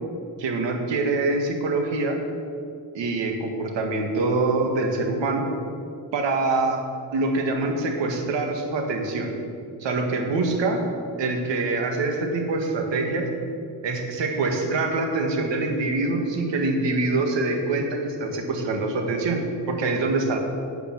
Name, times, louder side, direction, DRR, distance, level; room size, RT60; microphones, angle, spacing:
voice 1, 0.4-2.2 2.9-5.5 6.1-6.8 7.1-9.3 9.8-10.8 11.2-13.3 13.8-19.4 19.7-20.4, right 3 dB, 85° right, 3 dB, 1.8 m, -25 dB
11.0 x 7.0 x 7.3 m, 2.5 s
cardioid pair, 90°, 43 cm